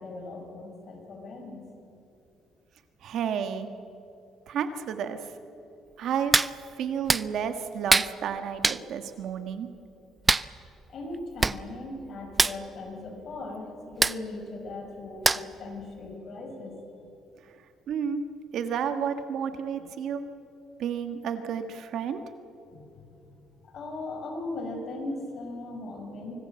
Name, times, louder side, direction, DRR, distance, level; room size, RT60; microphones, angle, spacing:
voice 1, 0.0-1.6 10.9-16.8 22.7-23.4 23.6-26.3, left 2 dB, 50° left, 2 dB, 5.4 m, -38 dB
voice 2, 3.0-3.7 4.5-5.2 6.0-9.7 17.9-18.2 18.5-20.2 20.8-22.2, right 7 dB, 65° right, 8 dB, 1.6 m, -31 dB
Hands, 6.3-6.5 7.1-7.2 7.9-8.1 8.6-8.8 10.3-10.5 11.1-11.2 11.4-11.6 11.8-12.0 12.3-12.6 14.0-14.2 15.2-15.6 16.0-16.1, right 3 dB, 20° right, 0.5 m, -22 dB
25.0 x 19.0 x 7.7 m, 2.9 s
cardioid pair, 120°, 0 cm